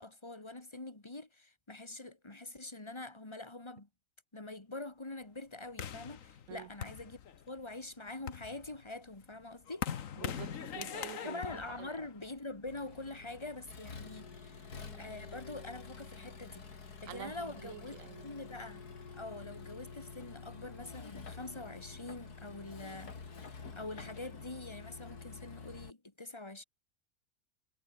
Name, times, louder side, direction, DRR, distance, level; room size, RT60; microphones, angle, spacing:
voice 1, 0.0-3.9 4.3-7.2 7.5-9.9 11.2-18.9 19.1-23.2 23.4-26.6, left 2 dB, 15° left, 2.3 m, -45 dB
sound 1, 5.8-7.6 8.1-12.7, left 8 dB, 55° left, 1.4 m, -42 dB
voice 2, 10.2-12.0 17.1-18.3, right 14 dB, 60° right, 0.9 m, -48 dB
Accelerating revving vroom, 12.7-25.9, left 5 dB, 75° left, 3.1 m, -49 dB
omnidirectional pair, 1.7 m